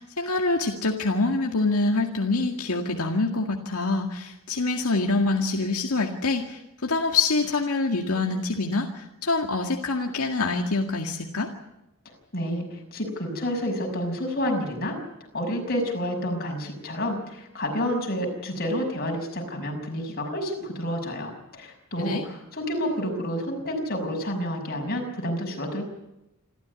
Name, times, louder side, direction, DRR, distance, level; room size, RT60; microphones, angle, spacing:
voice 1, 0.0-11.5 22.0-22.2, left 3 dB, 85° left, 2 dB, 2.0 m, -25 dB
voice 2, 12.0-15.0 15.3-25.9, equal, 45° left, 2 dB, 6.2 m, -29 dB
27.0 x 14.0 x 9.6 m, 0.92 s
head